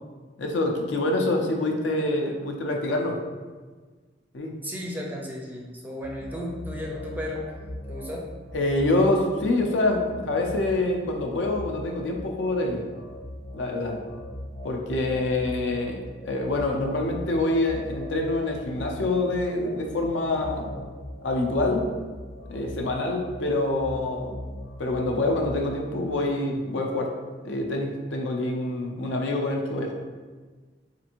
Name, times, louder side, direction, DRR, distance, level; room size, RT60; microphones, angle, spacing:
voice 1, 0.4-3.2 4.3-4.5 8.5-12.8 13.5-14.0 14.6-16.0 16.3-20.7 21.2-21.9 22.5-24.4 24.8-27.1 27.4-29.9, left 2 dB, 75° left, 2 dB, 0.5 m, -26 dB
voice 2, 4.6-8.3 15.4-15.7, left 1 dB, 10° right, -1 dB, 0.4 m, -35 dB
sound 1, 6.0-25.6, equal, 15° left, 0.7 m, -40 dB
4.3 x 2.5 x 2.9 m, 1.4 s
head